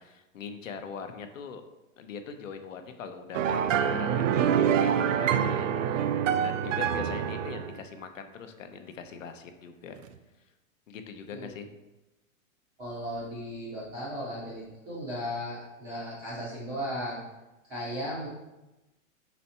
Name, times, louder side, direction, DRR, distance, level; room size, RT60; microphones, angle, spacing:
voice 1, 0.0-1.6 2.0-10.0 10.9-11.7, left 6 dB, 65° left, 7 dB, 0.8 m, -42 dB
sound 1, 3.3-7.7, right 8 dB, 65° right, 0.5 m, -26 dB
voice 2, 12.8-17.2 17.7-18.3, equal, 10° right, -9 dB, 0.5 m, -36 dB
5.6 x 4.2 x 4.2 m, 1.0 s
supercardioid pair, 175°, 41 cm